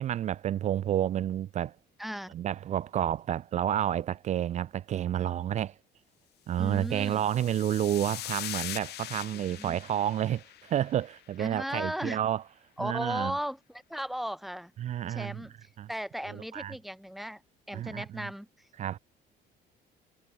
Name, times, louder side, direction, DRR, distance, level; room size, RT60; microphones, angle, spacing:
voice 1, 0.0-1.8 2.3-5.7 6.5-12.4 12.8-13.3 14.8-15.4 15.8-15.9 16.3-16.7 17.7-18.3 18.8-19.0, right 11 dB, 45° right, 0.4 m, -30 dB
voice 2, 2.0-2.3 6.6-7.2 9.3-9.8 11.4-12.2 12.8-14.7 15.0-17.4 17.7-18.7, equal, ahead, 3.5 m, -36 dB
sound 1, 6.8-11.3, left 15 dB, 75° left, 2.1 m, -41 dB
cardioid pair, 110°, 17 cm